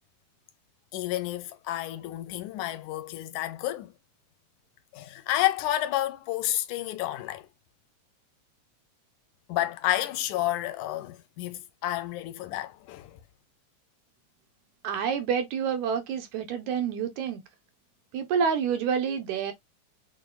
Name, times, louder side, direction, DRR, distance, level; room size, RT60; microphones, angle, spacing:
voice 1, 0.9-3.9 4.9-7.5 9.5-13.2, left 14 dB, 85° left, 2.0 m, -30 dB
voice 2, 14.8-17.4 18.1-19.5, right 7 dB, 75° right, 2.2 m, -28 dB
6.2 x 2.5 x 2.3 m
omnidirectional pair, 3.4 m